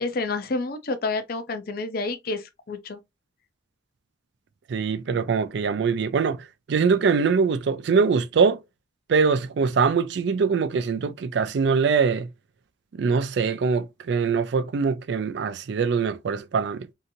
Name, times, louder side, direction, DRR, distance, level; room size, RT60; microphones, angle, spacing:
voice 1, 0.0-3.0, left 3 dB, 50° left, 0.5 m, -29 dB
voice 2, 4.7-8.6 9.1-12.3 12.9-16.9, right 5 dB, 60° right, 0.3 m, -23 dB
2.8 x 2.5 x 2.6 m
head